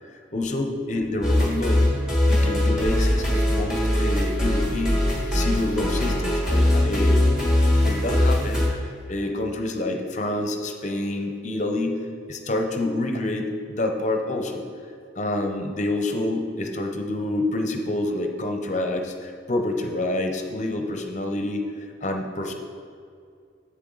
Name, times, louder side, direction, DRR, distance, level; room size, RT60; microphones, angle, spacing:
voice 1, 0.0-1.9 2.2-5.0 5.3-7.2 7.8-14.7 15.2-22.5, left 2 dB, 40° left, 4 dB, 0.6 m, -28 dB
sound 1, 1.2-8.7, left 1 dB, 5° right, 1.4 m, -21 dB
7.6 x 7.0 x 3.9 m, 2.3 s
head